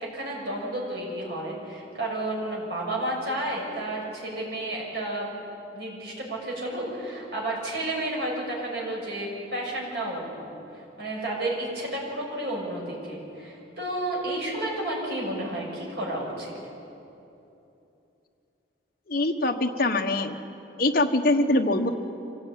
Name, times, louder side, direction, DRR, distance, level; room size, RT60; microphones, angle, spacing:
voice 1, 0.0-5.3 5.7-16.5, right 1 dB, 60° right, -3 dB, 6.8 m, -31 dB
voice 2, 19.1-20.3 20.8-21.9, left 2 dB, 50° left, 4 dB, 1.3 m, -23 dB
25.0 x 17.0 x 9.5 m, 2.9 s
head